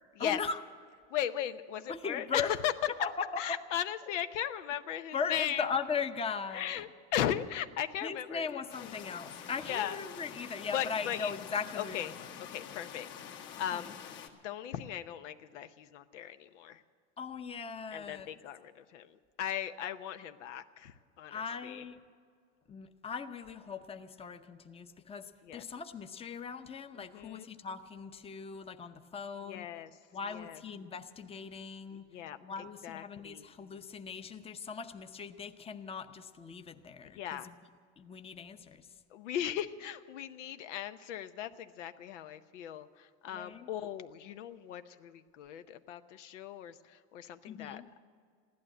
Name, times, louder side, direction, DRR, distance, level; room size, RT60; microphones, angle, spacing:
voice 1, 0.2-0.6 1.9-2.5 3.0-3.6 5.1-6.8 8.0-12.1 13.7-13.9 17.2-18.3 21.3-22.0 22.7-29.7 30.1-32.1 32.4-37.5 38.0-38.9 43.3-43.7 47.5-47.9, left 5 dB, 15° left, 8 dB, 0.7 m, -39 dB
voice 2, 1.1-2.7 3.4-5.7 6.5-9.0 9.4-10.0 10.7-11.3 11.7-12.2 12.5-14.0 14.3-16.8 17.9-21.8 25.4-25.6 26.9-27.5 29.3-30.0 30.3-30.6 31.9-33.5 37.0-37.5 39.1-48.0, left 10 dB, 85° left, 10 dB, 0.8 m, -38 dB
sound 1, 8.7-14.3, left 8 dB, 60° left, 1.8 m, -47 dB
15.5 x 12.0 x 7.7 m, 2.1 s
supercardioid pair, 110°, 35 cm